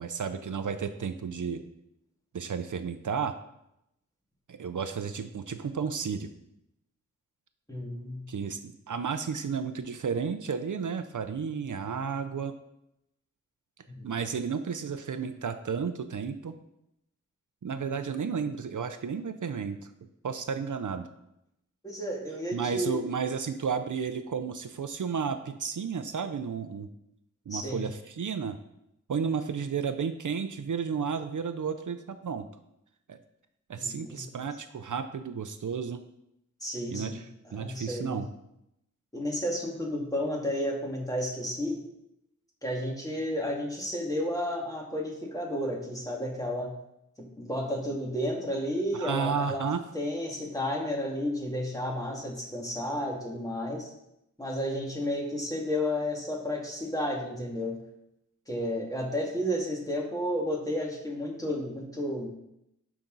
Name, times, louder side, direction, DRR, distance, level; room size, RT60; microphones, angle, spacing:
voice 1, 0.0-1.6 2.3-3.3 4.5-6.3 8.3-12.5 14.0-16.5 17.6-19.8 20.2-21.1 22.5-26.9 27.5-28.6 29.1-32.5 33.1-33.2 33.7-36.0 36.9-38.3 48.9-49.8, right 6 dB, 65° right, 9 dB, 0.6 m, -32 dB
voice 2, 7.7-8.3 13.9-14.1 21.8-23.0 27.5-27.9 33.8-34.4 36.6-38.3 39.1-41.8 42.6-46.7 47.2-49.6 49.9-53.9 54.4-57.8 58.5-62.3, equal, 10° left, -1 dB, 2.3 m, -32 dB
11.0 x 6.0 x 4.0 m, 0.82 s
wide cardioid pair, 80°, 32 cm